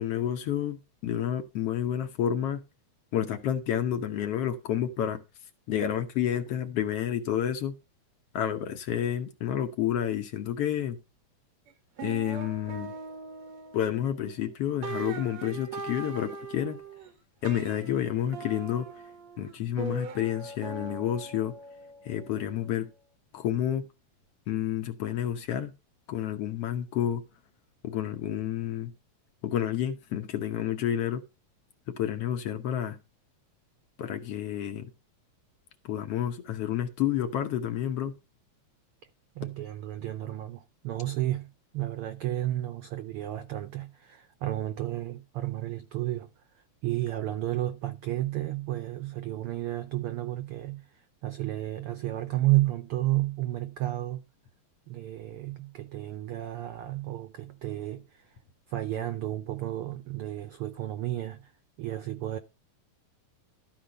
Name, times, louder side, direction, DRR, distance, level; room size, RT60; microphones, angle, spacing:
voice 1, 0.0-2.6 3.1-5.2 5.7-7.7 8.3-11.0 12.0-12.9 13.7-16.8 17.4-19.0 19.4-21.6 22.0-22.9 23.3-23.9 24.5-25.7 26.1-27.2 27.8-28.9 29.4-31.2 31.9-33.0 34.0-34.9 35.8-38.1, left 10 dB, 65° left, 1.8 m, -30 dB
sound 1, 11.7-11.8 12.0-14.3 14.8-17.1 17.4-22.7, right 4 dB, 65° right, 3.0 m, -41 dB
voice 2, 39.3-46.3 46.5-54.2 54.9-58.4 58.7-61.5 61.8-62.4, right 15 dB, 80° right, 1.2 m, -32 dB
13.0 x 4.5 x 6.5 m
omnidirectional pair, 3.3 m